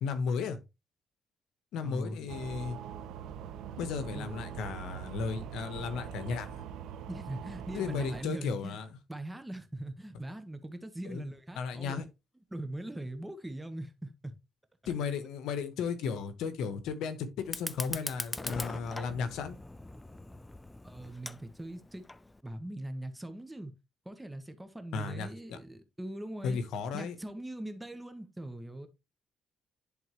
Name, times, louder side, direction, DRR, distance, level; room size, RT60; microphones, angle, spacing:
voice 1, 0.0-0.6 1.7-2.8 3.8-6.6 7.7-8.9 11.1-11.2 11.6-12.0 14.9-19.6 24.9-25.6 26.4-27.2, left 5 dB, 85° left, 1.1 m, -35 dB
voice 2, 1.8-2.3 4.1-4.4 7.1-8.8 9.1-12.0 12.5-14.3 20.8-22.1 22.4-23.8 24.0-26.6 26.9-28.9, right 1 dB, 10° right, 1.3 m, -41 dB
sound 1, 2.3-8.2, right 8 dB, 85° right, 0.7 m, -43 dB
Fire, 17.4-22.4, left 2 dB, 15° left, 0.5 m, -41 dB
11.0 x 3.7 x 3.1 m
cardioid pair, 90°, 0 cm